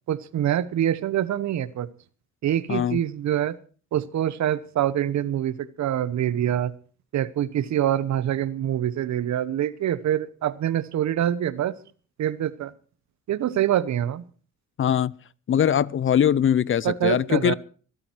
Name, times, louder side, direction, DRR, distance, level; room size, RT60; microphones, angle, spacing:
voice 1, 0.1-1.9 2.4-3.6 3.9-6.7 7.1-11.7 12.2-12.7 13.3-14.2 16.8-17.5, right 11 dB, 65° right, 1.0 m, -25 dB
voice 2, 2.7-3.0 14.8-15.1 15.5-17.5, left 9 dB, 40° left, 0.6 m, -21 dB
24.0 x 8.8 x 4.6 m
cardioid pair, 90°, 30 cm